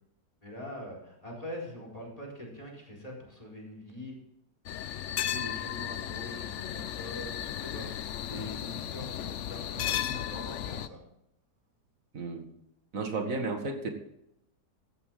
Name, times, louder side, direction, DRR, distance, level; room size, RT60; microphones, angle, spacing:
voice 1, 0.4-4.1 5.1-11.0, left 1 dB, 20° left, -1 dB, 4.5 m, -43 dB
sound 1, 4.7-10.9, left 10 dB, 65° left, 0.8 m, -35 dB
voice 2, 12.1-12.5 12.9-13.9, right 3 dB, 55° right, 5 dB, 2.2 m, -33 dB
15.0 x 11.5 x 3.9 m, 0.79 s
omnidirectional pair, 1.7 m